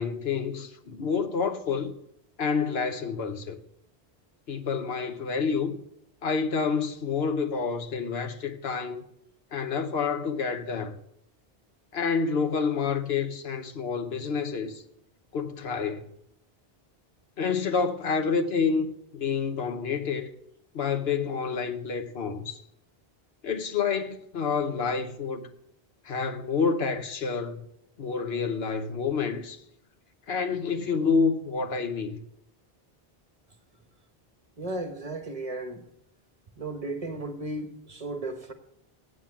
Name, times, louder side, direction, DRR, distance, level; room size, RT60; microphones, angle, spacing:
voice 1, 0.0-2.0 2.4-3.6 4.5-5.8 6.2-9.0 9.5-11.0 11.9-14.8 15.3-16.1 17.4-18.9 19.1-20.3 20.7-22.6 23.4-25.5 26.0-27.7 28.0-29.6 30.3-32.2, left 5 dB, 80° left, 1.2 m, -28 dB
voice 2, 34.6-35.8 36.6-38.5, right 2 dB, 35° right, 1.3 m, -35 dB
8.5 x 7.5 x 8.4 m
omnidirectional pair, 1.0 m